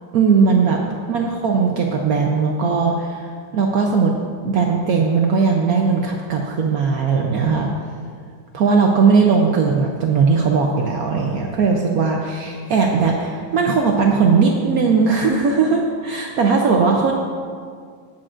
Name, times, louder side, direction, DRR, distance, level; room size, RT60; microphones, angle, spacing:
voice 1, 0.1-0.8 1.1-4.2 4.4-7.7 8.5-17.1, right 5 dB, 75° right, 0 dB, 0.8 m, -18 dB
17.5 x 7.4 x 2.5 m, 2.1 s
omnidirectional pair, 2.4 m